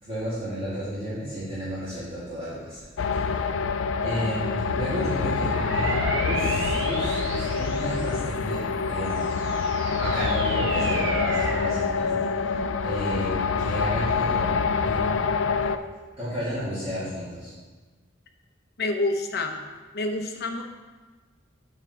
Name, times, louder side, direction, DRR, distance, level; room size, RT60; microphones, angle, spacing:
voice 1, 0.0-2.8 3.1-3.5 4.0-6.0 6.3-9.3 9.9-15.1 16.2-17.5, equal, 30° right, -13 dB, 2.8 m, -32 dB
sound 1, 3.0-15.8, left 5 dB, 85° left, 0.4 m, -26 dB
sound 2, 5.4-8.4 9.0-11.8, right 2 dB, 85° right, 1.2 m, -33 dB
voice 2, 18.8-19.5 19.9-20.6, left 2 dB, 55° left, 3 dB, 0.9 m, -27 dB
8.9 x 7.4 x 3.4 m, 1.3 s
head